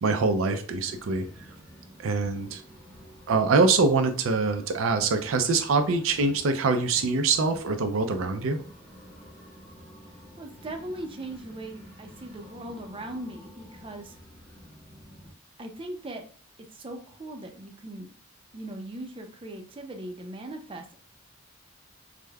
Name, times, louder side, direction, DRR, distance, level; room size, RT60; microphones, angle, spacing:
voice 1, 0.0-1.3 2.0-2.6 3.3-8.6, right 4 dB, 85° right, 6 dB, 0.5 m, -24 dB
sound 1, 0.8-15.3, equal, 15° left, 0.9 m, -50 dB
voice 2, 10.4-14.2 15.6-16.2 16.7-18.1 18.5-21.0, right 1 dB, 25° right, 4 dB, 0.5 m, -39 dB
4.8 x 2.1 x 2.3 m, 0.42 s
head